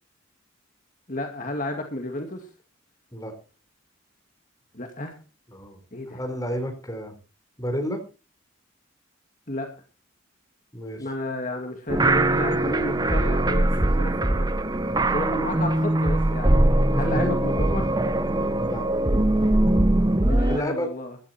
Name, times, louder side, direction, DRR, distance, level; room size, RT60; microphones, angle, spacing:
voice 1, 1.1-2.5 4.7-5.1 5.9-6.2 9.5-9.7 11.0-14.5 14.8-16.6 17.0-17.8 20.2-21.2, left 1 dB, 40° left, 4 dB, 2.2 m, -32 dB
voice 2, 6.1-7.1 7.6-8.0 10.7-11.1 16.9-17.4 18.6-18.9 20.5-20.9, equal, 15° left, 5 dB, 4.2 m, -30 dB
sound 1, 11.9-20.6, right 1 dB, 20° right, 0.8 m, -21 dB
15.5 x 12.5 x 4.4 m, 0.34 s
head